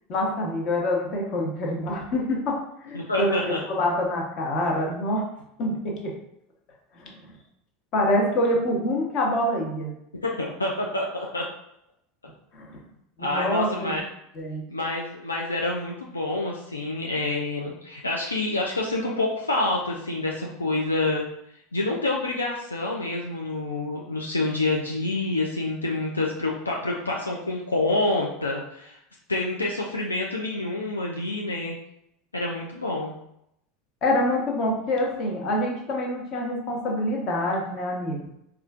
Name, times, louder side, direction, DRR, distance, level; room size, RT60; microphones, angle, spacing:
voice 1, 0.1-5.2 5.6-6.2 6.9-7.3 7.9-9.9 12.5-12.8 13.2-14.0 14.3-14.6 34.0-38.3, left 1 dB, 45° left, -1 dB, 0.9 m, -26 dB
voice 2, 2.9-3.6 10.2-11.4 13.2-14.0 14.7-21.2 21.7-29.0 29.3-31.7 32.3-33.1, left 2 dB, 85° left, -2 dB, 0.3 m, -27 dB
4.2 x 2.4 x 2.4 m, 0.79 s
figure-of-eight pair, 80°, 0 cm